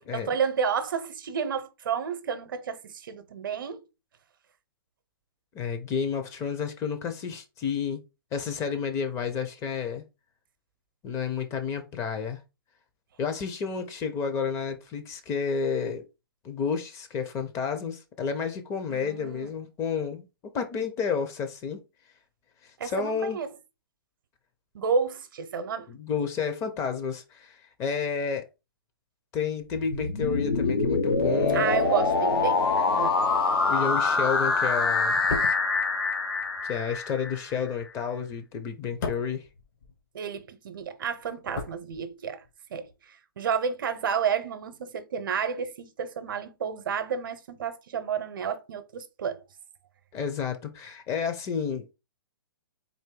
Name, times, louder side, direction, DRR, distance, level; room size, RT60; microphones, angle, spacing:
voice 1, 0.1-3.8 18.9-19.5 22.8-23.5 24.7-25.9 31.5-33.2 40.1-42.4 42.7-42.9 43.4-49.4, right 6 dB, 65° right, 0.7 m, -31 dB
voice 2, 5.5-8.0 8.3-10.0 11.0-12.4 13.2-16.1 16.4-20.2 20.5-21.8 22.8-23.4 25.9-28.5 29.3-31.7 33.7-35.2 36.7-39.4 50.1-51.9, left 6 dB, 25° left, 0.7 m, -31 dB
sound 1, 29.7-37.6, left 4 dB, 80° left, 1.0 m, -25 dB
sound 2, 35.1-40.4 40.7-42.5 42.8-43.0, left 3 dB, 55° left, 1.3 m, -38 dB
4.0 x 2.6 x 3.7 m
hypercardioid pair, 130°, 12 cm